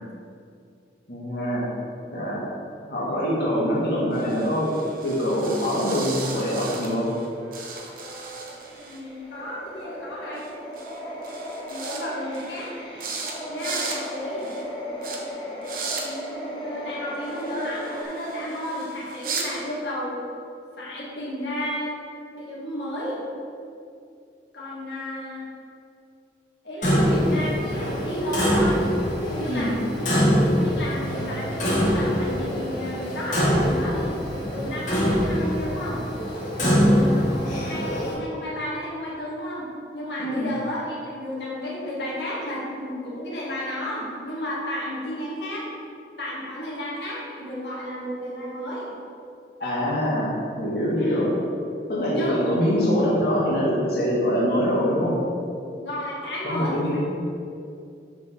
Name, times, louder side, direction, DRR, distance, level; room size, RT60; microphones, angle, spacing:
voice 1, 1.1-1.7 2.1-2.4 2.9-4.7 5.0-7.1 29.5-29.7 36.6-36.9 40.2-40.5 49.6-51.3 51.9-55.2 56.4-57.0, equal, 65° left, -7 dB, 2.1 m, -24 dB
sound 1, 4.1-7.3 7.5-9.0 10.4-10.5 10.8-11.0 11.2-12.0 12.3-12.7 13.0-13.3 13.6-14.0 14.4-14.6 15.0-15.2 15.6-16.0 17.2-19.5, right 5 dB, 50° right, 1.1 m, -36 dB
sound 2, 7.2-18.0, left 1 dB, 25° left, 1.6 m, -37 dB
voice 2, 8.6-10.5 11.6-12.7 13.5-14.6 16.0-20.2 20.8-21.9 22.3-23.2 24.5-25.4 26.6-28.8 29.2-36.0 36.6-45.6 46.2-49.0 50.9-51.3 52.1-52.5 55.6-57.0, equal, 85° left, -6 dB, 2.2 m, -32 dB
Clock, 26.8-38.1, equal, 45° left, 2.2 m, -23 dB
6.9 x 6.1 x 6.5 m, 2.5 s
head